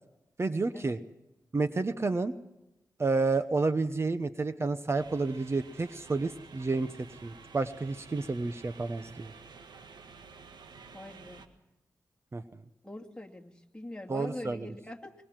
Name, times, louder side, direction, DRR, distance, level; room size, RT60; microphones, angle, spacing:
voice 1, 0.4-1.0 1.5-2.3 3.0-6.9 7.2-9.3 12.3-12.4 14.1-14.7, right 3 dB, 35° right, 11 dB, 1.0 m, -30 dB
sound 1, 4.9-11.5, right 5 dB, 85° right, 1.7 m, -51 dB
voice 2, 10.9-11.4 12.8-15.2, left 1 dB, 10° left, 2 dB, 2.4 m, -43 dB
23.0 x 21.5 x 7.5 m, 0.96 s
cardioid pair, 70°, 7 cm